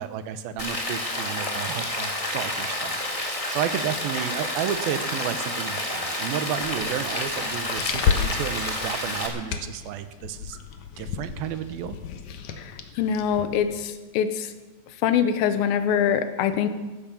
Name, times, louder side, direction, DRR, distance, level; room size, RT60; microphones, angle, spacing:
voice 1, 0.0-10.6 11.0-12.0, right 9 dB, 85° right, 11 dB, 2.7 m, -32 dB
Rain, 0.6-9.3, left 1 dB, 20° left, 0.9 m, -29 dB
sound 1, 6.5-13.9, left 7 dB, 65° left, 2.2 m, -32 dB
voice 2, 12.6-14.5 15.0-16.7, left 8 dB, 90° left, 10 dB, 2.8 m, -24 dB
15.0 x 12.0 x 7.0 m, 1.2 s
omnidirectional pair, 4.2 m